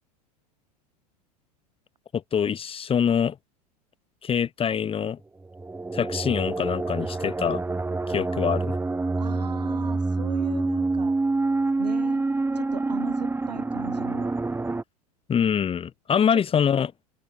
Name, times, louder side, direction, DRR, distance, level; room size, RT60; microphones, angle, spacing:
voice 1, 2.1-3.4 4.2-5.2 5.9-7.6 8.1-8.8 15.3-16.9, left 8 dB, 25° left, 6.0 m, -24 dB
sound 1, 5.4-14.8, right 3 dB, 10° right, 4.1 m, -27 dB
voice 2, 9.2-11.2 11.8-12.3 12.5-14.3 16.3-16.4, right 6 dB, 85° right, 7.9 m, -38 dB
open air
hypercardioid pair, 90°, 20 cm